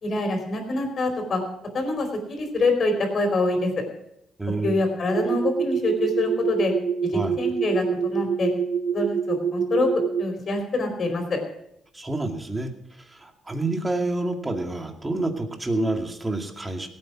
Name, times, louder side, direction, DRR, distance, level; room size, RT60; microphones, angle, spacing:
voice 1, 0.0-1.4 1.7-3.7 4.6-6.7 7.0-8.5 8.9-9.9 10.2-11.4, left 2 dB, 50° left, 4 dB, 4.6 m, -25 dB
voice 2, 4.4-4.8 7.1-7.4 11.9-12.7 13.1-16.9, right 2 dB, 15° right, 3 dB, 2.3 m, -28 dB
sound 1, 5.1-10.2, right 7 dB, 70° right, 0.9 m, -26 dB
17.5 x 8.8 x 6.1 m, 0.77 s
cardioid pair, 90°, 0 cm